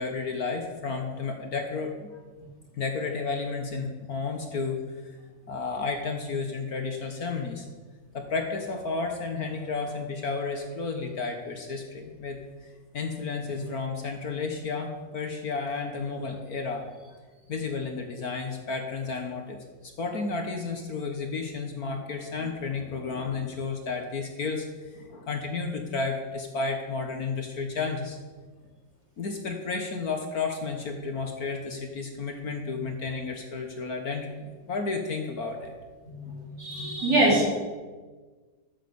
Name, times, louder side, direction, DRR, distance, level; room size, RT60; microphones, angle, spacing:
voice 1, 0.0-2.1 2.7-5.2 5.5-7.7 8.1-16.8 17.5-28.2 29.2-35.7, left 4 dB, 55° left, 4 dB, 1.5 m, -32 dB
voice 2, 36.0-37.5, right 1 dB, 55° right, -5 dB, 4.6 m, -24 dB
13.0 x 7.5 x 6.9 m, 1.4 s
omnidirectional pair, 2.1 m